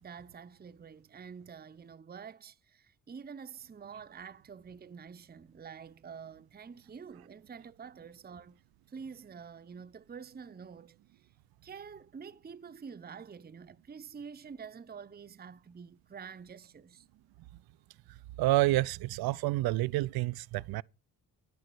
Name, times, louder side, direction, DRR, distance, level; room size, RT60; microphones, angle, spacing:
voice 1, 0.0-8.6 8.9-11.0 11.6-17.0, right 6 dB, 20° right, 0.7 m, -47 dB
voice 2, 18.4-20.8, right 17 dB, 60° right, 0.5 m, -28 dB
11.0 x 6.9 x 6.2 m
hypercardioid pair, 45°, 44 cm